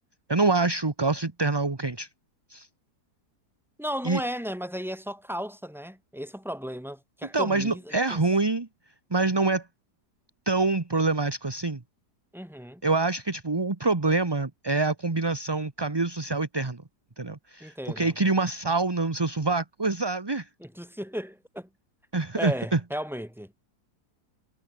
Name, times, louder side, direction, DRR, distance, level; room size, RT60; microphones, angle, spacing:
voice 1, 0.3-2.1 2.5-2.7 4.0-4.2 7.3-8.7 9.1-9.7 10.5-11.8 12.8-16.8 17.2-20.5 22.1-22.8, right 3 dB, 15° right, 1.0 m, -26 dB
voice 2, 3.8-8.2 12.3-12.8 17.6-18.1 20.6-21.7 22.4-23.5, equal, ahead, 3.6 m, -35 dB
omnidirectional pair, 1.7 m